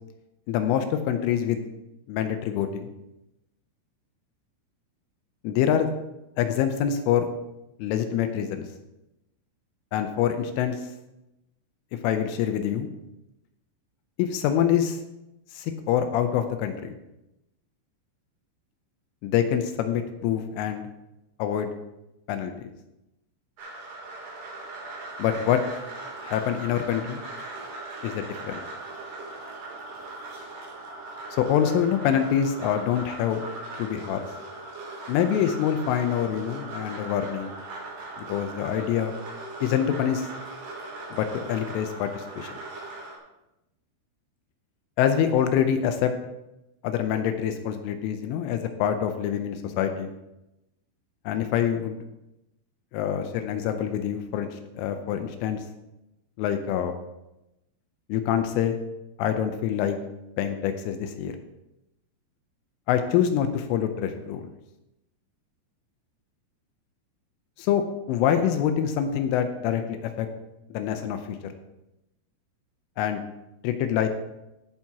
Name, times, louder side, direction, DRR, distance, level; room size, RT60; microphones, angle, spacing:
voice 1, 0.5-1.6 2.1-2.9 5.4-5.9 6.4-7.3 7.8-8.7 9.9-10.8 12.0-12.9 14.2-15.0 15.5-16.9 19.2-20.8 21.4-21.7 22.3-22.7 25.2-25.6 26.2-27.2 28.0-28.6 31.4-33.5 33.8-34.3 35.1-37.5 38.2-39.1 39.6-40.3 41.1-42.5 45.0-46.1 46.8-50.1 51.3-52.0 52.9-55.6 56.4-56.9 58.1-58.8 59.2-60.0 60.4-61.3 62.9-64.4 67.6-70.3 70.7-71.4 73.0-73.2 73.6-74.1, left 9 dB, 80° left, 7 dB, 3.2 m, -25 dB
sound 1, 23.6-43.2, right 2 dB, 55° right, 4.6 m, -39 dB
16.5 x 9.3 x 2.9 m, 0.93 s
omnidirectional pair, 5.8 m